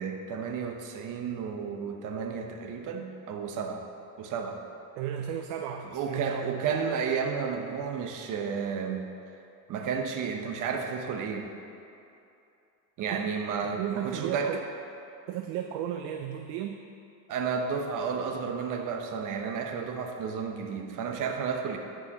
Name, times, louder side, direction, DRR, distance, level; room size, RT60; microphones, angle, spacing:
voice 1, 0.0-3.9 4.2-4.6 5.9-9.1 9.7-11.5 13.0-14.6 17.3-21.8, right 6 dB, 45° right, 3 dB, 0.9 m, -32 dB
voice 2, 5.0-6.6 13.6-14.6 15.3-16.8, right 10 dB, 60° right, 5 dB, 0.5 m, -34 dB
12.5 x 4.8 x 3.0 m, 2.7 s
supercardioid pair, 120°, 44 cm